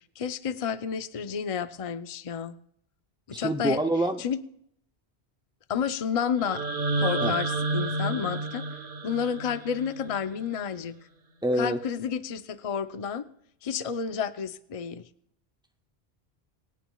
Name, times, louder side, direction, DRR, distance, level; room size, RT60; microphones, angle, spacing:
voice 1, 0.2-2.6 3.3-3.8 4.2-4.4 5.7-6.6 7.0-8.7 9.0-11.0 11.6-13.3 13.6-15.1, left 7 dB, 40° left, 11 dB, 0.7 m, -30 dB
voice 2, 3.3-4.2 7.2-7.3 11.4-11.8, right 1 dB, 10° right, 5 dB, 0.3 m, -26 dB
sound 1, 6.4-10.4, right 2 dB, 55° right, 1.2 m, -30 dB
27.5 x 9.3 x 2.3 m, 0.68 s
omnidirectional pair, 1.1 m